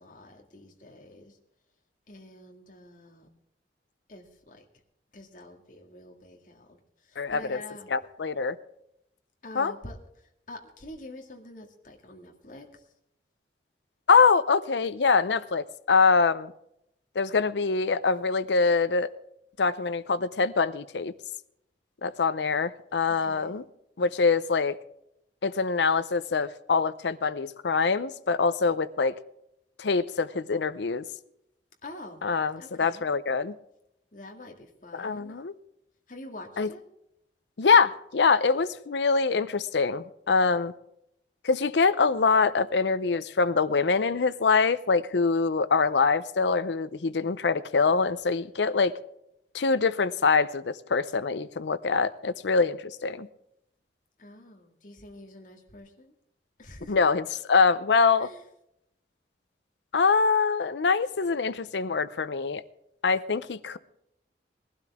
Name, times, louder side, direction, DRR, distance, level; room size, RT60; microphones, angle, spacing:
voice 1, 0.0-1.4 2.1-3.3 4.1-4.7 5.1-7.9 9.4-12.9 23.1-23.5 31.8-32.3 32.6-33.1 34.1-35.4 36.1-36.8 54.2-56.1 56.6-57.0 58.2-58.5, left 1 dB, 45° left, 2 dB, 2.0 m, -46 dB
voice 2, 7.2-7.6 7.9-8.6 9.6-9.7 14.1-16.5 17.2-19.1 19.6-21.1 22.0-23.6 24.0-24.8 25.4-29.1 29.8-31.0 32.2-32.5 32.8-33.5 34.9-35.5 36.6-36.7 37.6-40.7 41.4-48.9 49.5-53.3 56.9-58.3 59.9-62.6 63.0-63.8, left 4 dB, 80° left, 16 dB, 0.6 m, -24 dB
20.0 x 12.0 x 3.6 m, 0.79 s
head